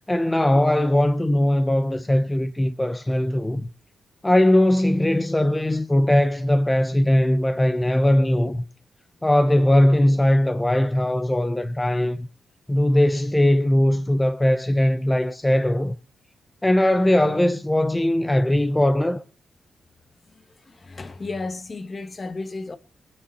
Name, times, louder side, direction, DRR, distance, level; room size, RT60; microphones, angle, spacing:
voice 1, 0.1-3.7 4.2-8.6 9.2-12.3 12.7-15.9 16.6-19.2, left 1 dB, 15° left, 0.9 m, -20 dB
voice 2, 20.3-22.8, left 3 dB, 40° left, 1.5 m, -34 dB
20.5 x 10.0 x 4.3 m
cardioid pair, 65°, 0 cm